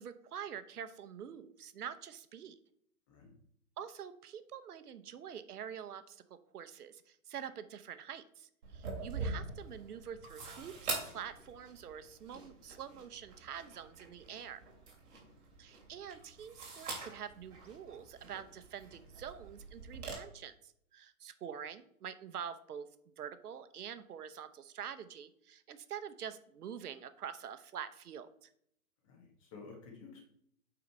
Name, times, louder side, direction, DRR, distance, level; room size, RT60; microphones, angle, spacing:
voice 1, 0.0-2.5 3.8-14.6 15.6-22.9 23.2-28.5, right 8 dB, 80° right, 12 dB, 0.9 m, -46 dB
sound 1, 8.6-20.1, right 3 dB, 45° right, 2.8 m, -45 dB
voice 2, 29.0-30.2, left 4 dB, 20° left, 0 dB, 1.5 m, -53 dB
8.6 x 3.9 x 4.6 m, 0.69 s
hypercardioid pair, 170°, 45 cm